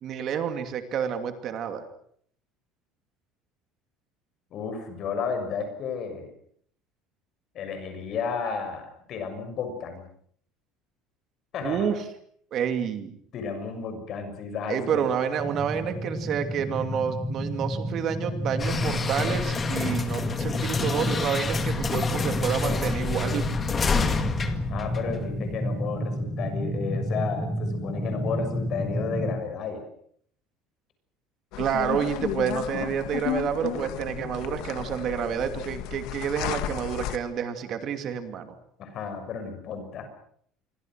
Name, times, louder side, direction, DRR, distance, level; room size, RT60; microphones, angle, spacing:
voice 1, 0.0-1.8 11.6-12.0 12.5-13.2 14.7-23.4 31.6-38.6, right 8 dB, 35° right, 8 dB, 2.6 m, -29 dB
voice 2, 4.5-6.3 7.5-10.0 11.5-11.9 13.3-15.0 24.7-29.8 38.8-40.1, left 5 dB, 35° left, 7 dB, 6.5 m, -32 dB
sound 1, 15.4-29.3, equal, ahead, 4.6 m, -31 dB
sound 2, 18.6-25.6, left 5 dB, 20° left, 2.0 m, -29 dB
sound 3, 31.5-37.2, left 13 dB, 55° left, 1.7 m, -33 dB
27.5 x 24.0 x 6.3 m, 0.63 s
cardioid pair, 175°, 0 cm